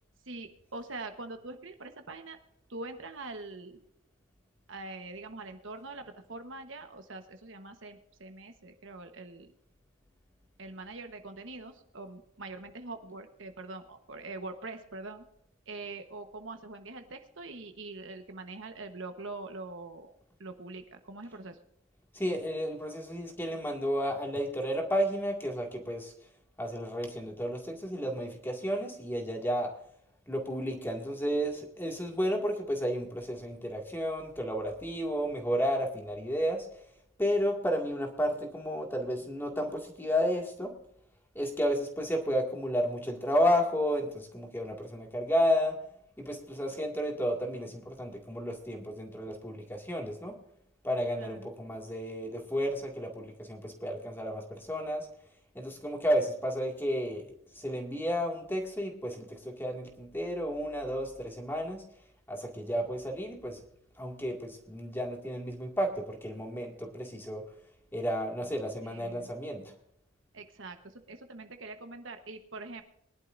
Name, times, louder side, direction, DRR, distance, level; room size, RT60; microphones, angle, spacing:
voice 1, 0.2-2.4 2.7-3.8 4.7-9.5 10.6-15.2 15.7-20.1 20.4-21.6 51.2-51.5 68.8-69.3 70.3-72.8, right 3 dB, 60° right, 7 dB, 1.1 m, -43 dB
voice 2, 22.1-26.1 26.6-29.7 30.3-36.7 37.2-40.7 41.4-45.8 46.2-50.4 50.8-55.1 55.5-57.3 57.6-61.8 62.3-63.6 64.0-67.4 67.9-69.7, equal, 10° left, 1 dB, 2.0 m, -32 dB
22.5 x 11.5 x 2.6 m, 0.72 s
head